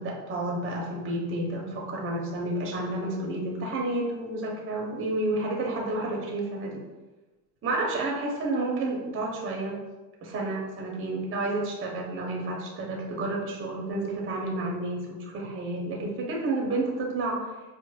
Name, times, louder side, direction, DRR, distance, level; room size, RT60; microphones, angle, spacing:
voice 1, 0.0-6.8 7.6-9.8 10.2-17.5, right 2 dB, 30° right, -2 dB, 0.8 m, -30 dB
5.0 x 2.0 x 2.3 m, 1.2 s
supercardioid pair, 110°, 45 cm